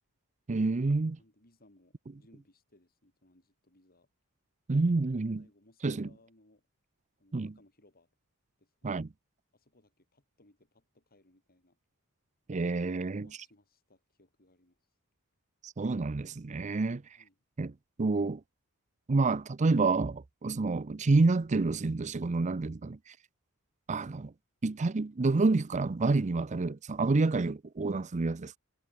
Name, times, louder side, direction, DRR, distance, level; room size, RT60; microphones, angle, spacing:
voice 1, 0.5-1.2 4.7-5.5 5.8-6.1 7.3-7.5 8.8-9.1 12.5-13.3 15.6-17.2 17.6-18.4 19.1-23.2 23.9-24.3 24.6-28.6, right 3 dB, 35° right, 0.5 m, -28 dB
voice 2, 1.2-4.1 5.4-6.7 7.2-8.2 8.6-9.0 9.5-11.8 13.2-14.8 17.2-17.4, left 1 dB, 45° left, 7.4 m, -64 dB
head